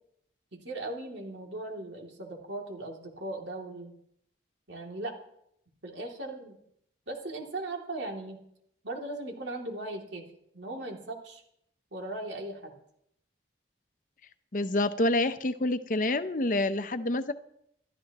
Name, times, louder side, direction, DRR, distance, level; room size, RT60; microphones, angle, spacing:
voice 1, 0.5-3.9 4.7-5.1 5.8-6.6 7.1-8.4 8.8-10.2 10.5-11.4 11.9-12.7, right 2 dB, 80° right, 0 dB, 2.8 m, -38 dB
voice 2, 14.5-17.3, left 2 dB, 45° left, 10 dB, 0.8 m, -27 dB
27.5 x 13.0 x 3.0 m, 0.73 s
head